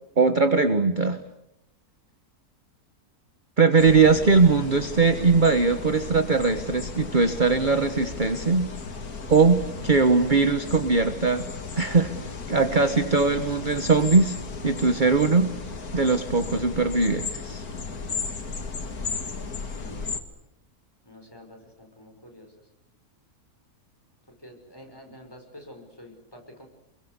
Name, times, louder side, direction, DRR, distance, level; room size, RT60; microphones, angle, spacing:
voice 1, 0.2-1.2 3.6-8.7 9.3-11.4 11.8-12.1 12.5-14.4 14.6-15.5 15.9-17.6, right 4 dB, 30° right, 9 dB, 1.4 m, -20 dB
sound 1, 3.8-20.2, left 4 dB, 70° left, 2.6 m, -35 dB
voice 2, 19.6-20.2 21.0-22.5 24.3-26.7, left 1 dB, 15° left, 2 dB, 5.9 m, -48 dB
29.0 x 22.5 x 8.2 m, 0.82 s
omnidirectional pair, 1.6 m